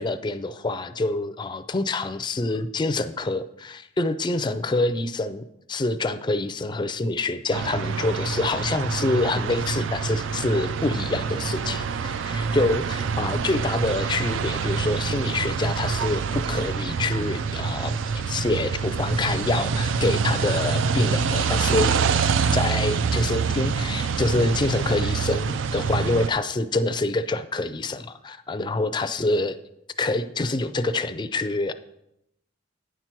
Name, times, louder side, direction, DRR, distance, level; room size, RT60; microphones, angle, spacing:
voice 1, 0.0-18.0 18.3-22.3 22.5-29.6 30.0-31.7, left 2 dB, 25° left, 10 dB, 0.4 m, -26 dB
sound 1, 7.5-26.3, right 5 dB, 65° right, 0.4 m, -26 dB
9.6 x 5.9 x 4.5 m, 0.82 s
head